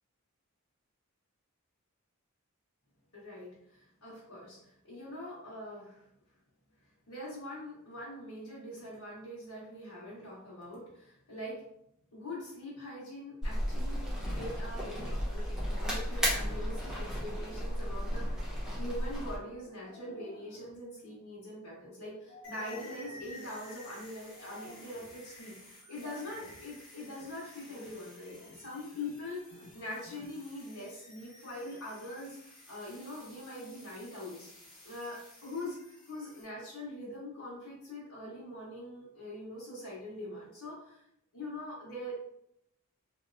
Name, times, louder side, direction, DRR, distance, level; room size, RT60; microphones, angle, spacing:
voice 1, 3.1-6.1 7.1-11.6 12.1-25.5 25.9-34.5 34.8-35.8 36.1-41.0 41.3-42.4, left 1 dB, 80° left, -9 dB, 1.2 m, -43 dB
sound 1, 13.4-19.4, equal, 5° right, 0.8 m, -34 dB
sound 2, 16.0-17.0 19.5-20.8 22.3-23.4 24.3-25.2 26.0-26.7 27.0-27.4 27.7-28.0 28.3-29.2 29.5-30.4, left 2 dB, 40° left, 0.4 m, -53 dB
sound 3, 22.4-36.4, left 2 dB, 25° left, 1.0 m, -54 dB
3.1 x 2.7 x 2.5 m, 0.75 s
head